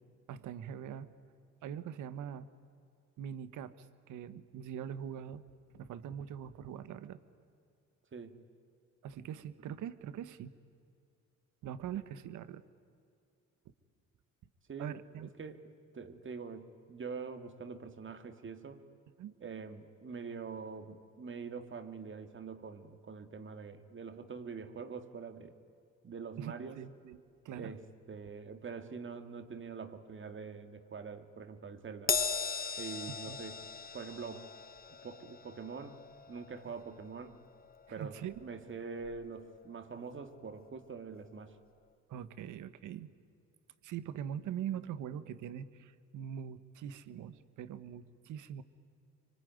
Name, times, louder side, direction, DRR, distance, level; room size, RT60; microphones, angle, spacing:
voice 1, 0.3-1.1 1.6-2.5 3.2-5.4 5.7-7.2 9.0-10.5 11.6-12.6 13.6-13.7 14.8-15.3 19.2-19.3 26.4-27.2 27.4-27.7 33.3-33.4 38.0-38.5 42.1-43.1 43.8-48.6, right 9 dB, 80° right, 14 dB, 1.3 m, -42 dB
voice 2, 8.1-8.4 14.7-15.7 15.9-18.8 19.4-25.6 26.0-26.8 27.5-32.2 32.8-33.6 33.9-34.5 35.0-36.0 36.3-37.4 37.9-41.6, right 5 dB, 40° right, 8 dB, 2.2 m, -44 dB
Crash cymbal, 32.1-38.7 39.0-39.3 40.3-40.4, left 6 dB, 30° left, 0.9 m, -39 dB
25.5 x 24.5 x 9.4 m, 2.5 s
cardioid pair, 90°, 30 cm